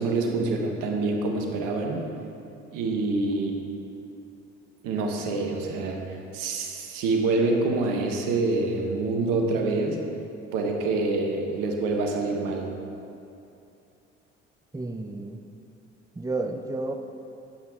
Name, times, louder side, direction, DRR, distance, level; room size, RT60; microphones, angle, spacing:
voice 1, 0.0-2.1 2.7-3.5 4.8-10.0 10.5-12.7, right 3 dB, 70° right, 2 dB, 1.4 m, -26 dB
voice 2, 14.7-15.4 16.2-16.9, right 2 dB, 10° right, 6 dB, 0.7 m, -31 dB
12.5 x 8.2 x 3.8 m, 2.7 s
hypercardioid pair, 55°, 34 cm